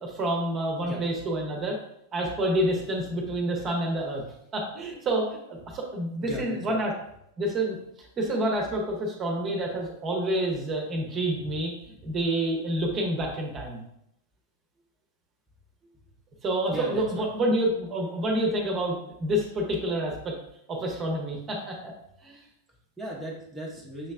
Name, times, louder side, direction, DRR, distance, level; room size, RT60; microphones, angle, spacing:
voice 1, 0.0-1.8 2.1-4.2 4.5-5.4 5.7-6.9 7.4-7.8 8.2-11.7 12.0-13.8 16.4-20.3 20.7-21.9 22.2-22.4, right 1 dB, 25° right, 0 dB, 1.0 m, -28 dB
voice 2, 6.2-6.8 11.4-11.5 15.8-16.0 16.7-17.3 22.7-24.1, right 1 dB, 5° right, -5 dB, 0.9 m, -38 dB
6.4 x 3.1 x 2.4 m, 0.76 s
figure-of-eight pair, 90°, 0 cm